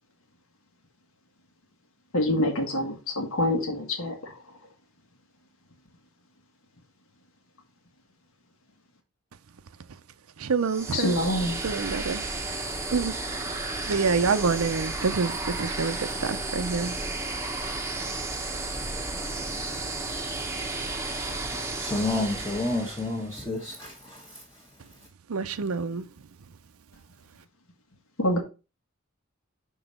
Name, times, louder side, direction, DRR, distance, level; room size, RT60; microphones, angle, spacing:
voice 1, 2.1-4.1 10.9-11.6 28.2-28.4, left 1 dB, 70° left, 1.5 m, -26 dB
voice 2, 10.4-11.2 11.6-12.2 12.9-13.1 13.4-17.0 25.3-26.1, right 5 dB, 85° right, 0.6 m, -27 dB
sound 1, 10.6-23.3, right 2 dB, 15° right, 0.8 m, -33 dB
voice 3, 21.8-23.9, left 2 dB, 15° left, 1.1 m, -29 dB
6.1 x 3.9 x 5.3 m
head